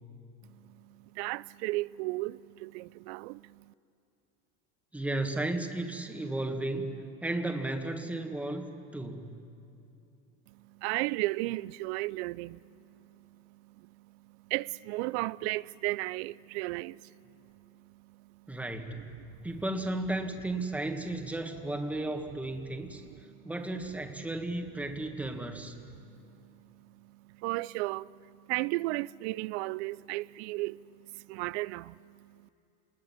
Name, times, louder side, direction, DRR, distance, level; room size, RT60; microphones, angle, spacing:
voice 1, 0.4-3.7 10.5-18.6 18.9-19.1 22.9-23.5 26.0-32.5, right 20 dB, 80° right, 0.5 m, -36 dB
voice 2, 4.9-8.7 8.9-9.5 18.5-19.2 19.4-23.0 23.4-25.7, right 2 dB, 5° right, 1.6 m, -34 dB
27.5 x 21.0 x 7.3 m
cardioid pair, 145°, 32 cm